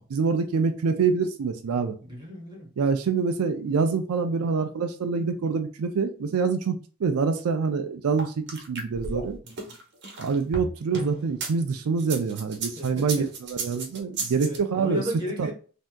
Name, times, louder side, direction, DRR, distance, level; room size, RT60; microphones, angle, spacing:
voice 1, 0.1-1.9 2.8-8.3 8.7-9.4 10.2-15.0 15.4-15.5, right 5 dB, 85° right, 0.4 m, -26 dB
voice 2, 2.1-2.7 9.4-9.7 12.8-13.3 14.4-15.5, left 1 dB, 20° right, 1.1 m, -35 dB
sound 1, 8.2-11.5 12.0-14.6, right 3 dB, 55° right, 0.9 m, -34 dB
3.4 x 2.7 x 2.2 m
head